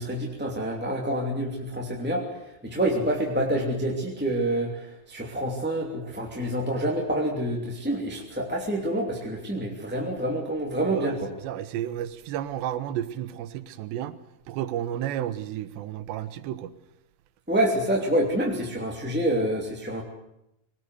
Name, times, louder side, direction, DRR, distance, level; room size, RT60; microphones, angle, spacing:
voice 1, 0.0-11.3 17.5-20.0, right 1 dB, 5° right, 1.6 m, -27 dB
voice 2, 10.9-14.2 14.5-16.7, right 11 dB, 85° right, 3.3 m, -32 dB
23.0 x 19.0 x 7.9 m
omnidirectional pair, 4.8 m